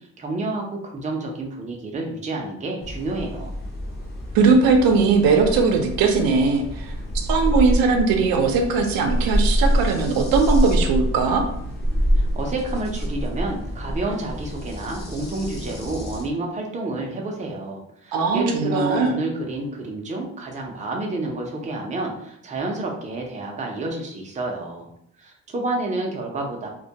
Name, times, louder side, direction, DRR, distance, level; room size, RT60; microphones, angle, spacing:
voice 1, 0.2-3.6 12.1-24.9 25.2-26.7, right 2 dB, 20° right, 0 dB, 0.4 m, -29 dB
sound 1, 2.8-16.3, equal, 30° left, 0.7 m, -26 dB
voice 2, 4.3-6.9 7.3-11.5 18.1-19.2, right 4 dB, 85° right, 4 dB, 0.5 m, -19 dB
2.2 x 2.1 x 2.7 m, 0.71 s
cardioid pair, 110°, 34 cm